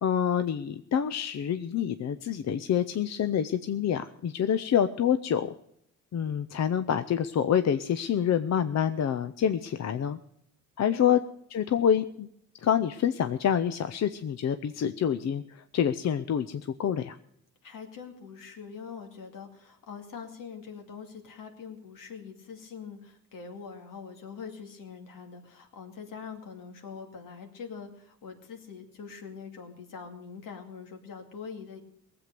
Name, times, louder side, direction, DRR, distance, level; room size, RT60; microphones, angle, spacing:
voice 1, 0.0-5.5 6.1-10.2 10.8-11.2 11.5-12.3 12.6-17.2, left 8 dB, 55° left, 11 dB, 0.6 m, -27 dB
voice 2, 10.9-11.2 17.6-31.8, left 6 dB, 80° left, 4 dB, 2.4 m, -43 dB
18.5 x 7.9 x 6.7 m, 0.72 s
cardioid pair, 85°, 32 cm